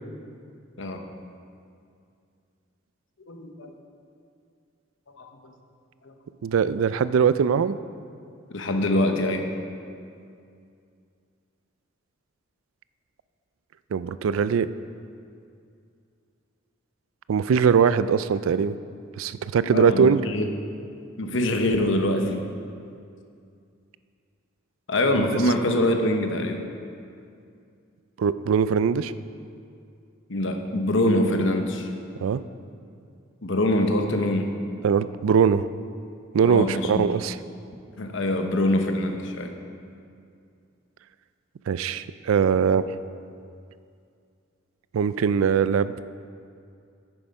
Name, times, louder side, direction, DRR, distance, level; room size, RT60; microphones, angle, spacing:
voice 1, 3.3-3.7 5.1-5.5 6.0-6.1 8.5-9.5 19.7-20.5 21.2-22.5 24.9-26.6 30.3-31.9 33.4-34.5 36.4-37.2 38.0-39.5, left 1 dB, 60° left, 5 dB, 0.9 m, -24 dB
voice 2, 6.4-7.8 13.9-14.7 17.3-18.7 19.2-20.2 25.1-25.3 28.2-29.1 32.2-32.4 34.8-35.7 36.3-37.4 41.7-42.9 44.9-46.0, right 6 dB, 75° right, 15 dB, 0.3 m, -21 dB
9.3 x 8.9 x 5.4 m, 2.4 s
head